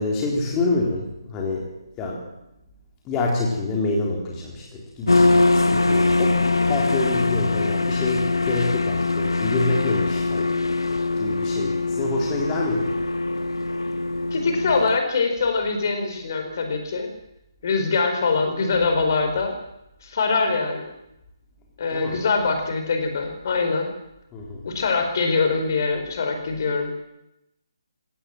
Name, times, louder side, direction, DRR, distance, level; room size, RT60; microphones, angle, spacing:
voice 1, 0.0-1.7 2.0-2.3 3.1-13.0 21.9-22.2 24.3-24.6, left 2 dB, 20° left, -1 dB, 3.8 m, -27 dB
sound 1, 5.1-15.0, left 3 dB, 75° left, 1.3 m, -22 dB
voice 2, 14.3-17.1 17.6-19.6 20.0-20.9 21.8-23.9 24.6-26.9, left 4 dB, 45° left, 5 dB, 4.8 m, -23 dB
22.5 x 17.5 x 7.8 m, 0.87 s
figure-of-eight pair, 145°, 2 cm